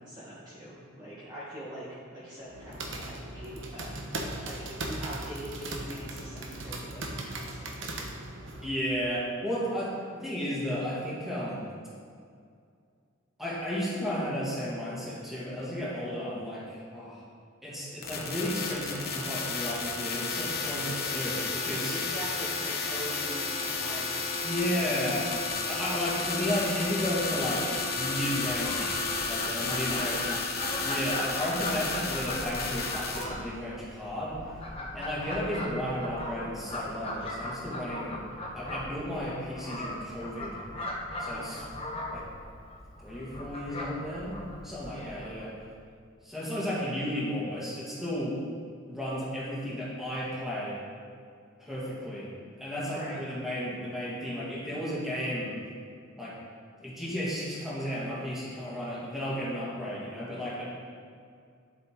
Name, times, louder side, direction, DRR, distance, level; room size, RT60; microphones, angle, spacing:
voice 1, 0.0-4.0 4.4-7.9 21.9-25.0 29.7-30.4 41.3-41.6 44.9-45.3 52.9-53.2, equal, 20° right, -10 dB, 1.6 m, -43 dB
sound 1, 2.4-8.7, right 2 dB, 65° right, 1.0 m, -38 dB
voice 2, 8.6-11.7 13.4-17.2 17.6-22.0 24.4-25.3 25.7-30.3 30.8-34.4 34.9-38.2 38.5-40.6 41.2-41.6 42.1-42.3 43.0-45.5 46.2-48.4 48.9-50.8 51.6-52.3 52.6-55.5 56.2-56.4 56.8-60.7, equal, ahead, -8 dB, 2.4 m, -33 dB
sound 2, 18.0-33.2, left 4 dB, 50° left, 1.1 m, -32 dB
Fowl, 28.3-45.7, left 1 dB, 30° left, 1.2 m, -39 dB
10.5 x 7.7 x 3.9 m, 2.3 s
head